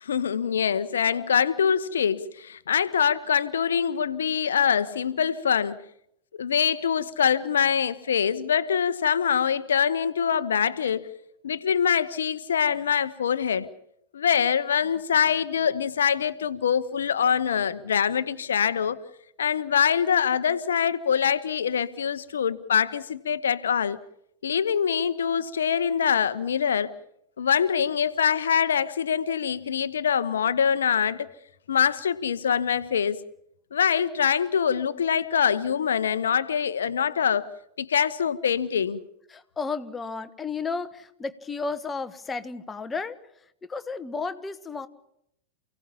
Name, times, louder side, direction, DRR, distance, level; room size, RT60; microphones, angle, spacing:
voice 1, 0.0-5.8 6.4-11.1 11.4-13.7 14.1-19.0 19.4-24.0 24.4-26.9 27.4-31.3 31.7-33.2 33.7-37.5 37.8-39.0, left 7 dB, 65° left, 1.0 m, -24 dB
voice 2, 39.3-43.2 43.6-44.9, left 4 dB, 15° left, 1.4 m, -33 dB
29.0 x 17.0 x 7.2 m
figure-of-eight pair, 90°, 0 cm